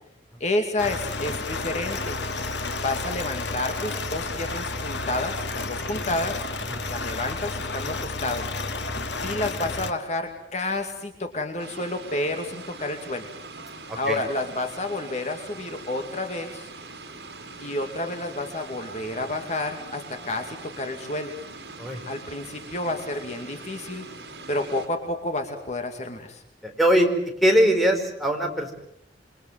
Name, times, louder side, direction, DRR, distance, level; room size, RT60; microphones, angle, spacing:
voice 1, 0.4-2.2 2.8-6.5 6.9-8.5 9.2-13.3 14.0-16.7 17.6-21.3 22.1-24.1 24.5-26.4, left 2 dB, 40° left, 5 dB, 2.5 m, -30 dB
sound 1, 0.8-9.9, left 3 dB, 80° left, 2.5 m, -31 dB
sound 2, 11.6-24.9, right 3 dB, 65° right, 5.7 m, -42 dB
voice 2, 26.6-27.1 27.4-28.7, equal, ahead, 2 dB, 5.0 m, -21 dB
28.0 x 23.5 x 7.6 m, 0.73 s
head